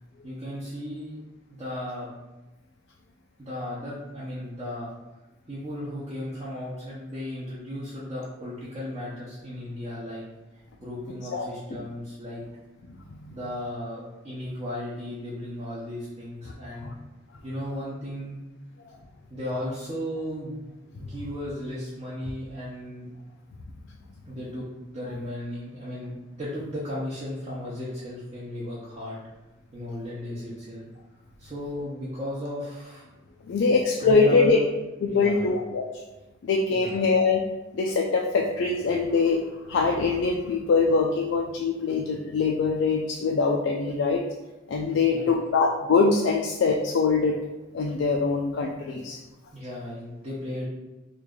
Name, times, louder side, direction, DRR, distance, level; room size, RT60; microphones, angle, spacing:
voice 1, 0.2-1.2 1.6-2.1 3.4-4.9 5.5-10.2 10.8-12.4 13.3-16.9 17.4-18.4 19.3-20.6 20.9-23.1 24.3-24.7 24.9-29.2 29.7-30.8 31.4-33.0 34.0-34.6 35.0-35.5 36.7-37.0 45.1-45.3 48.9-49.0 49.5-50.6, left 1 dB, 30° right, -9 dB, 0.7 m, -35 dB
voice 2, 33.5-34.6 35.0-35.9 36.4-37.4 37.7-39.4 39.7-44.2 44.7-47.4 47.7-49.2, left 4 dB, 65° left, 1 dB, 0.3 m, -23 dB
3.1 x 2.4 x 3.6 m, 1.1 s
head